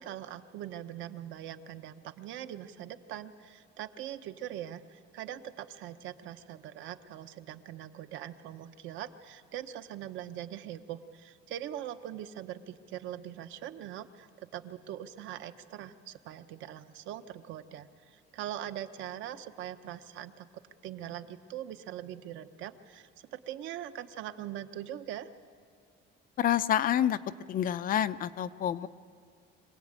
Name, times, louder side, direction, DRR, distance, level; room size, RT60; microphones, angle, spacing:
voice 1, 0.0-20.5 20.8-25.3, right 11 dB, 75° right, 10 dB, 1.0 m, -42 dB
voice 2, 26.4-27.2 27.5-28.9, left 10 dB, 45° left, 13 dB, 0.6 m, -28 dB
25.0 x 17.5 x 9.0 m, 2.2 s
cardioid pair, 155°, 20 cm